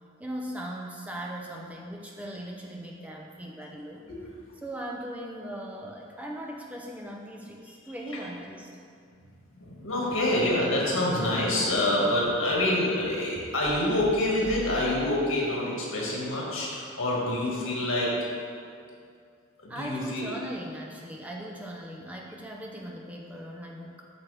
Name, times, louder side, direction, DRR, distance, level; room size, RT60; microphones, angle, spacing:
voice 1, 0.2-4.0 4.6-8.7 17.1-17.9 19.7-24.1, right 1 dB, 5° right, -1 dB, 0.5 m, -39 dB
voice 2, 9.5-18.1 19.6-20.3, left 1 dB, 85° left, -4 dB, 1.9 m, -27 dB
sound 1, 10.1-10.2 10.4-10.5 10.8-10.9 11.2-11.3 11.7-11.8 12.2-12.6 13.0-13.1 13.4-13.7 14.0-14.1 14.4-14.9, equal, 30° right, 1.0 m, -42 dB
8.3 x 6.0 x 3.4 m, 2.3 s
head